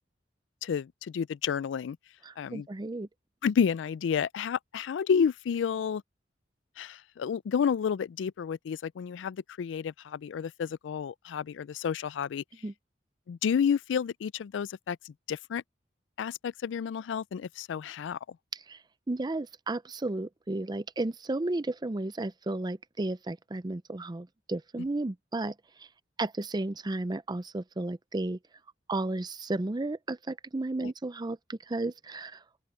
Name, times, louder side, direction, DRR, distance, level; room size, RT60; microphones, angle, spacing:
voice 1, 0.6-2.0 2.4-2.7 3.4-6.0 6.8-12.4 13.3-15.6 16.2-18.2, left 7 dB, 85° left, 0.3 m, -30 dB
voice 2, 2.2-3.1 12.6-12.7 18.7-18.8 19.1-25.5 26.2-28.4 28.9-32.4, right 2 dB, 25° right, 0.5 m, -33 dB
head